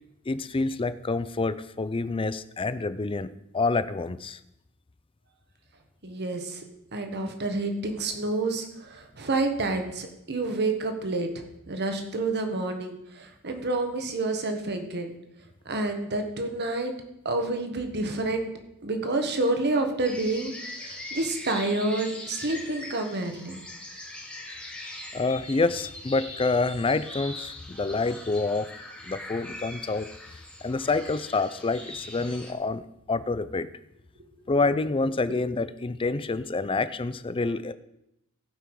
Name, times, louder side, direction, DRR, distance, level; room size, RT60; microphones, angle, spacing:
voice 1, 0.3-4.4 25.1-28.7 29.0-30.1 30.6-32.8 33.1-33.7 34.5-37.7, left 3 dB, 25° left, 13 dB, 0.5 m, -27 dB
voice 2, 6.0-6.6 6.9-15.1 15.6-16.9 17.2-18.5 18.8-20.5 21.1-23.6 35.3-35.4, right 2 dB, 50° right, 5 dB, 1.5 m, -29 dB
sound 1, 20.0-32.5, left 1 dB, 5° left, 1.4 m, -41 dB
16.0 x 5.7 x 4.8 m, 0.83 s
head